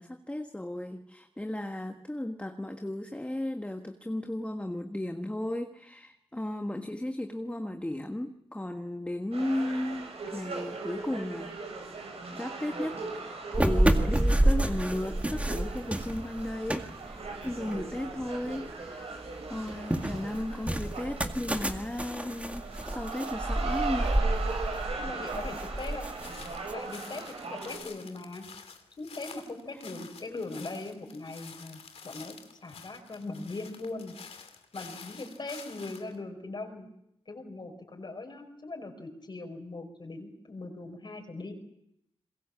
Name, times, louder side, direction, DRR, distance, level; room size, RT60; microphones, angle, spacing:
voice 1, 0.0-11.5 12.3-19.1 19.5-24.1 27.6-27.7, left 1 dB, 10° left, 5 dB, 1.5 m, -35 dB
sound 1, 9.3-27.8, right 4 dB, 80° right, 7.1 m, -39 dB
sound 2, 13.5-18.7 19.1-26.7, right 1 dB, 15° right, 2.0 m, -29 dB
voice 2, 25.0-26.1 26.7-28.5 29.0-32.3 32.6-34.1 34.7-36.9 37.3-41.5, left 2 dB, 50° left, 2 dB, 5.2 m, -40 dB
sound 3, 25.8-36.2, left 5 dB, 85° left, 2.5 m, -49 dB
27.0 x 22.0 x 7.3 m, 0.80 s
wide cardioid pair, 85°, 10 cm